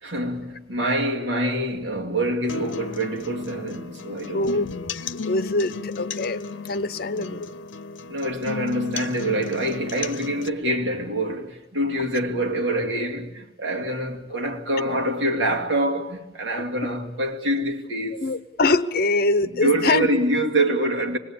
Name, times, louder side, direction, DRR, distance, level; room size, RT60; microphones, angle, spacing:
voice 1, 0.0-4.6 7.2-7.5 8.1-18.2 19.6-21.2, right 1 dB, 85° right, 2.4 m, -25 dB
sound 1, 2.5-10.5, left 4 dB, 85° left, 0.7 m, -34 dB
voice 2, 4.3-6.4 6.7-7.5 16.6-16.7 18.1-20.1, left 2 dB, 55° left, 0.9 m, -24 dB
25.5 x 20.0 x 8.6 m
head